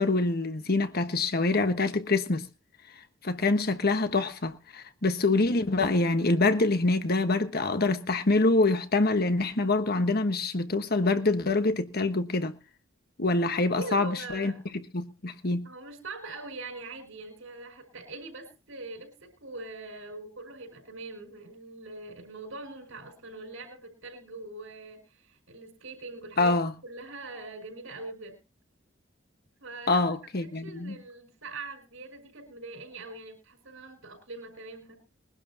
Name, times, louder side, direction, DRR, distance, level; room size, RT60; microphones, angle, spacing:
voice 1, 0.0-2.4 3.2-12.5 13.2-14.5 14.9-15.6 26.4-26.7 29.9-31.0, left 3 dB, 50° left, 1.3 m, -25 dB
voice 2, 13.5-14.6 15.6-26.6 26.8-28.4 29.6-35.0, right 2 dB, 85° right, 5.3 m, -42 dB
22.5 x 11.5 x 2.8 m
head